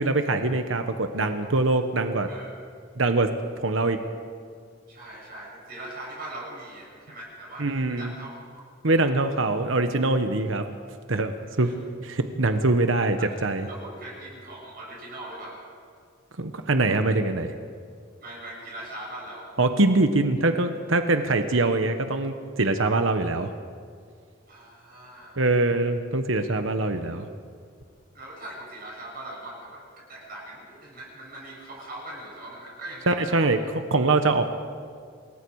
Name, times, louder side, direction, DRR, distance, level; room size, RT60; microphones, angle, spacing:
voice 1, 0.0-2.3 3.0-3.3 3.6-4.0 7.6-8.1 8.8-10.6 11.1-11.7 12.0-13.7 16.4-17.5 19.6-23.5 25.4-27.3 33.1-34.5, right 2 dB, 75° right, 7 dB, 1.2 m, -23 dB
voice 2, 2.3-2.6 4.9-8.6 11.6-11.7 13.2-13.3 13.7-15.6 18.2-19.5 24.5-25.5 28.1-33.6, right 1 dB, 45° right, -4 dB, 6.9 m, -41 dB
27.5 x 21.5 x 4.8 m, 2.1 s
head